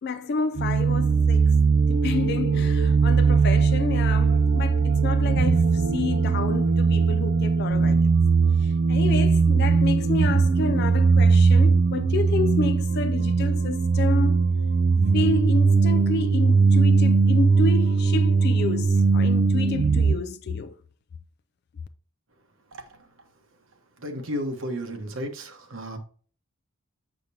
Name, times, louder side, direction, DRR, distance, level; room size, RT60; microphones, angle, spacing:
voice 1, 0.0-1.6 1.9-8.1 8.6-14.5 15.1-20.8, left 4 dB, 50° left, 0.3 m, -30 dB
sound 1, 0.6-20.2, right 4 dB, 45° right, 0.4 m, -20 dB
voice 2, 24.0-26.0, equal, 70° right, 1.2 m, -33 dB
7.9 x 5.1 x 2.7 m
head